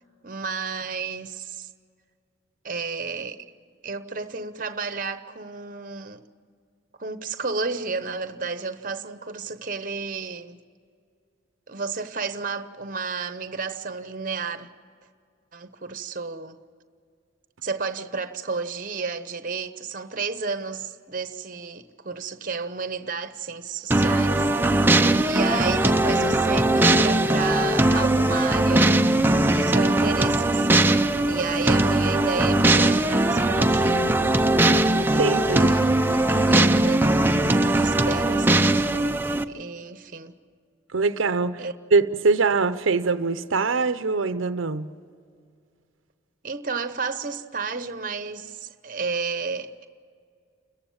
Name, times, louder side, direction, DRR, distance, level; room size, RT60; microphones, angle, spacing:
voice 1, 0.2-1.7 2.6-3.4 3.8-6.2 7.0-10.6 11.7-14.7 15.5-16.6 17.6-29.1 29.5-31.0 31.3-34.1 35.1-37.2 37.7-38.8 39.5-40.3 41.6-41.7 46.4-49.9, right 4 dB, 45° right, 0.8 m, -32 dB
sound 1, 23.9-39.4, right 1 dB, 10° right, 0.5 m, -20 dB
voice 2, 35.1-35.7 40.9-41.6 41.9-44.9, right 4 dB, 90° right, 0.7 m, -23 dB
29.5 x 15.0 x 7.2 m
head